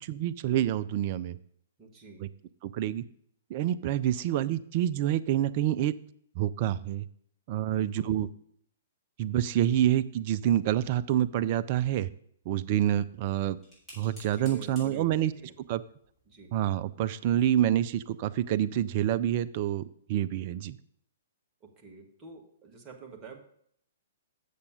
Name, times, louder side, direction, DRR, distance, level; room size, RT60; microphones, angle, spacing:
voice 1, 0.0-1.4 2.2-2.3 2.6-3.0 3.5-5.9 6.4-7.1 7.5-8.3 9.2-12.1 12.5-13.6 14.0-15.3 15.7-15.8 16.5-19.8 20.1-20.8, right 11 dB, 40° right, 13 dB, 0.4 m, -27 dB
voice 2, 1.8-2.3 7.7-8.1 14.4-15.5 16.3-16.5 21.6-23.4, right 4 dB, 20° right, 1 dB, 1.4 m, -47 dB
sound 1, 12.4-17.6, equal, ahead, 4.3 m, -56 dB
7.0 x 6.6 x 5.1 m, 0.65 s
figure-of-eight pair, 115°, 0 cm